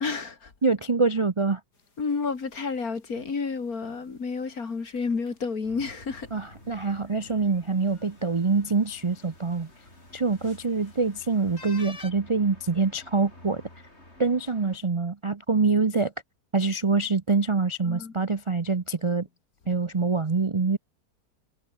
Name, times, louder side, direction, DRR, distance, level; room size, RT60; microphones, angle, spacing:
voice 1, 0.0-0.5 2.0-6.3 6.8-6.9 17.8-18.1, left 4 dB, 60° left, 3.0 m, -30 dB
voice 2, 0.6-1.6 6.3-9.7 10.1-13.6 14.2-16.1 16.5-19.3 19.7-20.8, right 4 dB, 35° right, 0.4 m, -25 dB
sound 1, 1.7-12.1, left 3 dB, 80° left, 5.0 m, -53 dB
sound 2, 5.6-14.8, left 1 dB, 40° left, 8.4 m, -51 dB
omnidirectional pair, 1.7 m